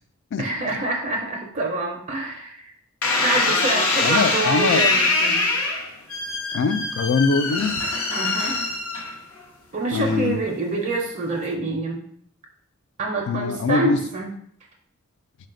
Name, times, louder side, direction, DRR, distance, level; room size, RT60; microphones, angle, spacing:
voice 1, 0.4-2.7 3.2-5.4 8.1-8.6 9.7-12.0 13.0-14.3, right 3 dB, 35° right, 0 dB, 0.4 m, -26 dB
sound 1, 3.0-9.4 10.1-10.5, left 3 dB, 80° left, 0.7 m, -23 dB
voice 2, 4.0-4.9 6.5-7.8 9.9-10.4 13.3-14.0, left 4 dB, 55° left, 10 dB, 0.3 m, -22 dB
4.0 x 2.2 x 3.7 m, 0.66 s
head